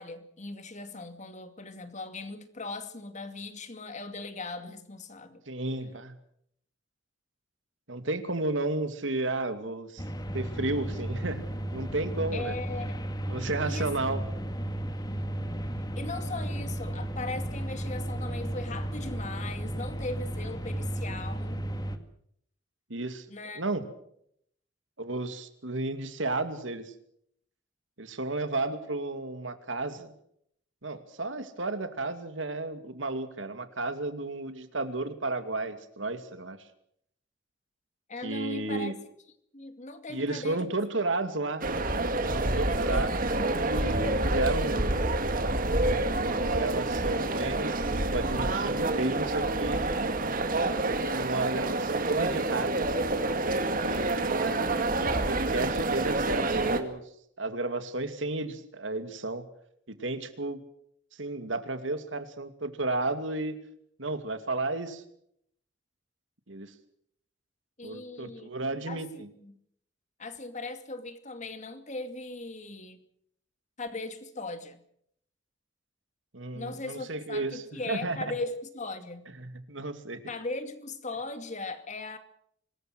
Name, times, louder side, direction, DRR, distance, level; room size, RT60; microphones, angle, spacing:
voice 1, 0.0-5.4 12.3-12.9 13.7-14.2 15.9-21.6 23.3-23.6 38.1-38.9 39.5-40.7 41.3-41.4 54.5-54.6 67.8-68.5 68.9-69.5 70.2-73.0 73.8-74.8 76.5-79.2 80.3-82.2, left 3 dB, 40° left, 2.4 m, -39 dB
voice 2, 5.5-6.2 7.9-10.0 10.3-11.4 11.7-12.6 13.3-14.2 22.9-23.3 23.6-23.9 25.0-26.9 28.0-30.1 30.8-36.6 38.2-39.0 40.1-41.7 42.1-44.9 46.2-47.8 48.1-49.8 51.1-52.9 53.7-54.7 55.0-57.0 57.4-59.5 59.9-60.6 61.2-63.6 64.0-65.0 66.5-66.7 67.8-69.3 76.3-78.2 79.4-80.2, right 2 dB, 85° right, 2.6 m, -33 dB
sound 1, 10.0-22.0, right 1 dB, 20° left, 2.0 m, -34 dB
sound 2, 41.6-56.8, right 2 dB, 45° right, 2.3 m, -28 dB
25.5 x 21.0 x 6.2 m
head